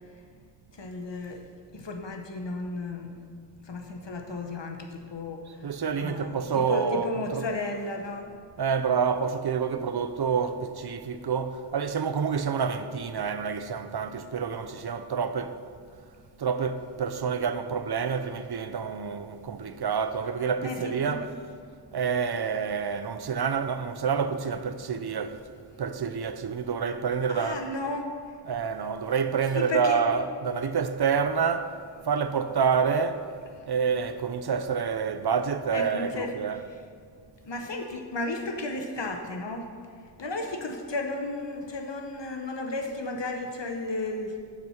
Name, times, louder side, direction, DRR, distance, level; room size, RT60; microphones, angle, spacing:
voice 1, 0.8-1.4 1.7-3.2 3.7-5.4 6.0-8.4 20.6-21.3 27.3-28.1 29.5-30.0 35.7-36.3 37.4-39.7 40.2-44.3, left 2 dB, 75° left, 1.0 m, -33 dB
voice 2, 5.6-7.5 8.6-15.6 16.4-21.3 21.9-25.4 25.8-27.6 28.4-31.7 32.1-33.2 33.7-36.7, right 6 dB, 60° right, 0.5 m, -28 dB
7.6 x 5.9 x 5.8 m
wide cardioid pair, 50°, 43 cm